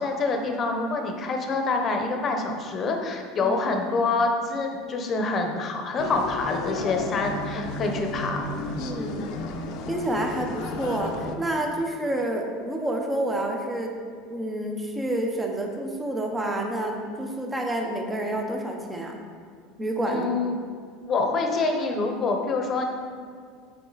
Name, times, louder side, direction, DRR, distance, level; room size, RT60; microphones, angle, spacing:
voice 1, 0.0-8.8 20.1-20.5 21.0-22.9, left 3 dB, 30° left, 3 dB, 0.9 m, -26 dB
sound 1, 6.0-11.4, left 2 dB, 60° left, 0.7 m, -33 dB
voice 2, 8.8-9.3 9.9-13.9 14.3-19.2 19.8-20.3, right 1 dB, 10° right, 2 dB, 0.9 m, -29 dB
7.9 x 4.9 x 4.1 m, 2.1 s
supercardioid pair, 130°, 0 cm